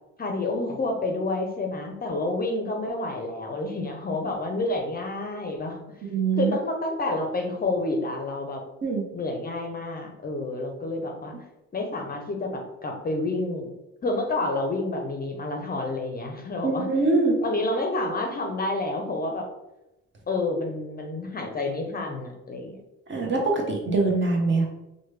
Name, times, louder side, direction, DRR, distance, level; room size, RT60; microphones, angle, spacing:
voice 1, 0.2-5.8 6.4-8.6 9.1-11.4 11.7-13.7 14.0-16.9 17.4-19.5 20.3-22.8, left 2 dB, 30° left, 2 dB, 0.5 m, -29 dB
voice 2, 6.1-6.5 8.8-9.0 16.6-17.4 23.1-24.7, right 3 dB, 40° right, 1 dB, 0.8 m, -23 dB
3.1 x 2.2 x 3.2 m, 0.95 s
cardioid pair, 90°, 30 cm